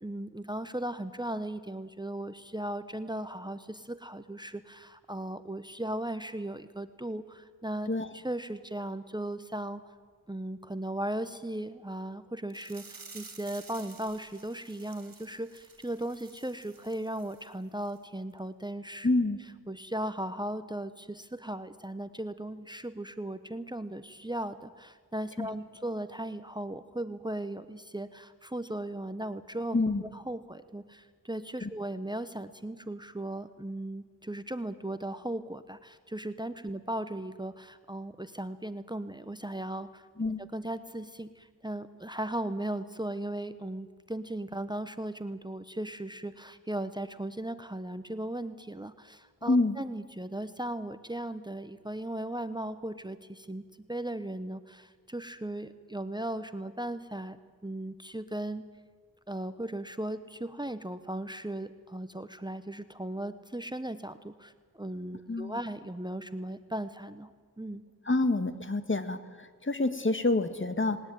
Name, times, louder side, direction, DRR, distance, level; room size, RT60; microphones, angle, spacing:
voice 1, 0.0-9.8 10.3-19.1 19.7-53.6 53.9-58.6 59.3-67.3 67.6-67.8, right 1 dB, 15° right, 12 dB, 1.0 m, -37 dB
sound 1, 12.5-17.5 17.8-18.0 18.4-18.5, right 4 dB, 80° right, 2.8 m, -52 dB
voice 2, 19.0-19.4 25.4-25.5 29.7-30.0 31.6-31.7 40.2-40.4 49.5-49.8 65.3-65.6 68.1-71.0, left 2 dB, 35° left, 10 dB, 1.7 m, -27 dB
19.5 x 19.5 x 9.2 m, 1.5 s
wide cardioid pair, 60°, 34 cm